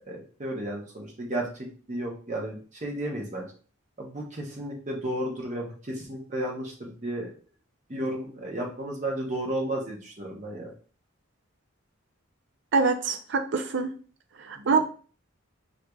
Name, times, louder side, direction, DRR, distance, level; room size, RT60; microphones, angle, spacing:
voice 1, 0.1-3.5 4.0-7.3 7.9-10.7 14.6-14.8, right 1 dB, 35° right, -1 dB, 0.8 m, -33 dB
voice 2, 12.7-13.9 14.4-14.8, right 4 dB, 55° right, 6 dB, 0.5 m, -25 dB
4.6 x 2.5 x 2.3 m, 0.40 s
head